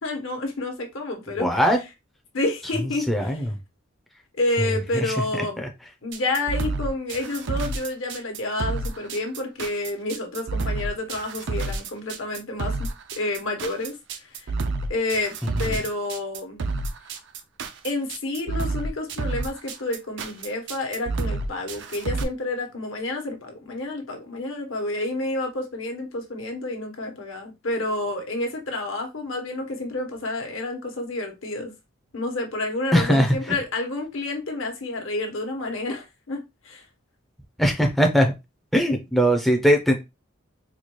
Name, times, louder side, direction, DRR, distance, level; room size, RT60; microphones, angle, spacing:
voice 1, 0.0-1.5 2.3-3.4 4.4-5.6 6.0-13.9 14.2-14.5 14.9-16.6 17.8-31.7 32.1-36.8, left 2 dB, 70° left, 1.1 m, -29 dB
voice 2, 1.4-1.8 3.1-3.5 5.0-5.2 5.6-5.7 15.6-15.7 32.9-33.3 37.6-38.3 38.7-39.9, equal, ahead, 0.5 m, -20 dB
sound 1, 6.1-22.2, right 3 dB, 60° right, 0.5 m, -29 dB
4.2 x 2.3 x 3.0 m
head